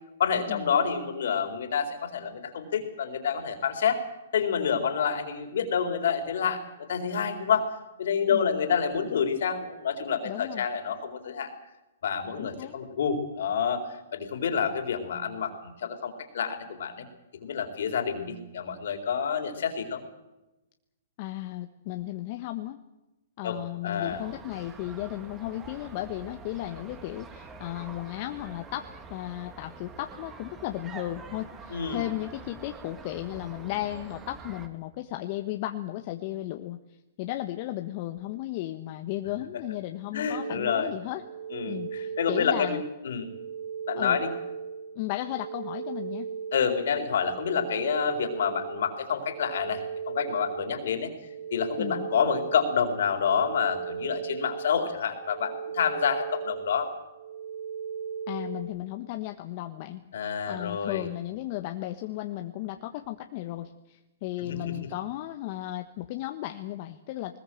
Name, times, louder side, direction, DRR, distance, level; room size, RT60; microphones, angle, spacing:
voice 1, 0.2-4.0 4.3-7.7 8.0-11.5 12.0-13.8 14.1-17.1 17.4-20.0 23.4-24.2 31.7-32.0 40.1-40.9 41.5-43.3 43.9-44.3 46.5-49.8 50.1-51.1 51.5-56.9 60.1-61.1 64.5-64.6, left 7 dB, 70° left, 6 dB, 4.2 m, -28 dB
voice 2, 10.2-10.7 12.4-12.8 21.2-22.8 23.4-28.8 29.1-36.8 37.2-41.2 41.7-42.8 43.9-44.2 44.9-46.3 51.8-52.1 58.3-60.0 60.5-67.4, left 15 dB, 45° left, 6 dB, 1.3 m, -35 dB
sound 1, 24.0-34.7, right 4 dB, 20° right, 2.6 m, -46 dB
sound 2, 40.3-58.6, right 7 dB, 50° right, 4.6 m, -37 dB
21.0 x 20.5 x 7.8 m, 0.99 s
hypercardioid pair, 130°, 0 cm